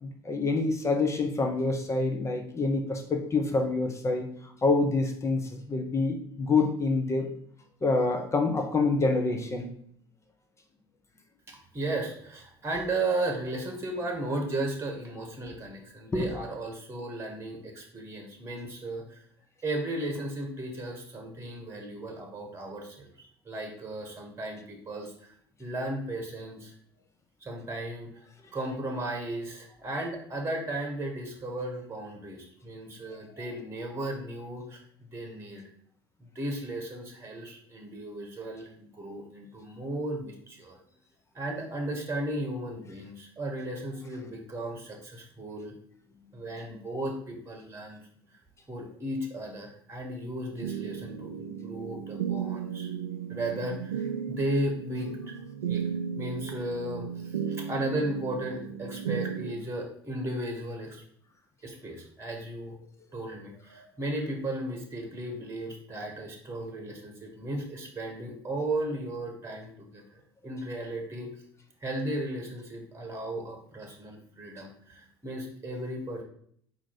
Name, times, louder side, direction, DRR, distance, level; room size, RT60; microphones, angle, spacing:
voice 1, 0.0-4.3 4.6-7.3 7.8-9.7 16.1-16.3, left 3 dB, 25° left, 4 dB, 0.8 m, -27 dB
voice 2, 11.5-19.2 19.6-25.3 25.6-26.7 27.4-28.1 28.5-34.8 35.1-35.6 36.3-40.8 41.3-45.7 46.3-48.0 48.7-52.9 53.3-55.4 55.7-55.8 56.2-61.0 61.6-62.7 63.1-71.3 71.8-76.2, right 1 dB, 20° right, 2 dB, 1.3 m, -35 dB
sound 1, 50.6-59.5, right 8 dB, 85° right, 0.4 m, -35 dB
4.4 x 2.8 x 4.3 m, 0.63 s
hypercardioid pair, 70°, 13 cm